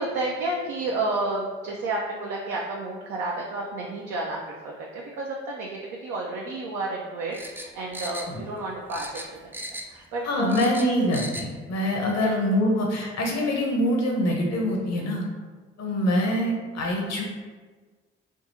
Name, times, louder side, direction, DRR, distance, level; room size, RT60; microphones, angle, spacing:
voice 1, 0.0-9.6 9.8-10.6 12.2-12.3, right 2 dB, 65° right, -2 dB, 0.5 m, -31 dB
sound 1, 7.3-8.6 8.9-10.0 10.3-11.5 11.8-11.9, equal, 5° right, 0.4 m, -37 dB
voice 2, 10.2-15.2 15.8-17.2, equal, 55° left, 0 dB, 0.9 m, -24 dB
3.6 x 2.7 x 2.6 m, 1.4 s
hypercardioid pair, 45°, 31 cm